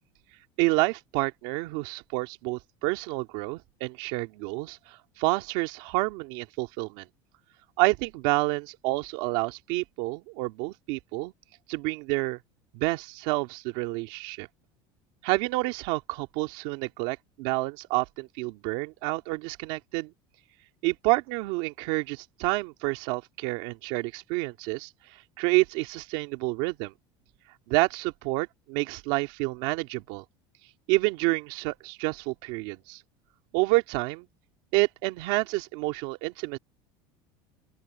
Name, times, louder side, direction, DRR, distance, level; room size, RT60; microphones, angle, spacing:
voice 1, 0.6-7.1 7.8-11.3 11.7-12.4 12.7-14.5 15.2-20.1 20.8-24.9 25.4-26.9 27.7-30.2 30.9-33.0 33.5-34.3 34.7-36.6, right 22 dB, 65° right, 2.1 m, -28 dB
open air
cardioid pair, 170°, 12 cm